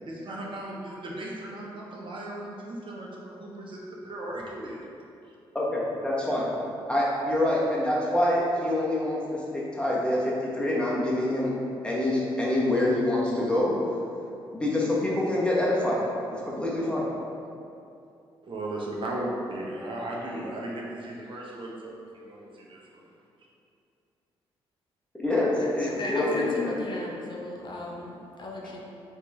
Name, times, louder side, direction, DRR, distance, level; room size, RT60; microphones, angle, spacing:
voice 1, 0.1-4.9 18.4-23.1, right 1 dB, 50° right, -3 dB, 0.8 m, -36 dB
voice 2, 5.5-6.5 6.9-9.2 9.5-11.5 11.8-13.7 14.5-16.0 16.5-17.1 25.2-26.7, left 1 dB, 10° left, -6 dB, 1.3 m, -26 dB
voice 3, 25.6-28.8, left 2 dB, 50° left, -1 dB, 0.7 m, -35 dB
4.4 x 3.0 x 3.6 m, 2.6 s
supercardioid pair, 60°, 11 cm